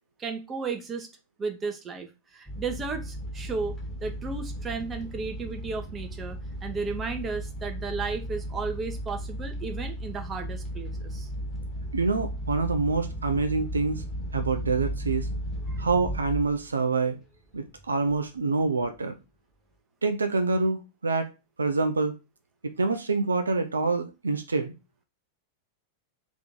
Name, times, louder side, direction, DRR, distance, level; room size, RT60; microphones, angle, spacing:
voice 1, 0.2-1.1 1.4-3.7 4.0-11.3 15.7-15.8, right 4 dB, 20° right, 0.8 m, -34 dB
sound 1, 2.5-16.6 17.0-17.3 17.8-17.9 18.1-18.2, equal, 5° left, 1.4 m, -35 dB
voice 2, 11.9-14.0 14.3-15.3 15.8-17.2 17.5-19.2 20.0-21.3 21.6-22.2 22.6-24.7, right 3 dB, 75° right, 0.4 m, -26 dB
3.5 x 3.0 x 3.7 m
figure-of-eight pair, 90°, 0 cm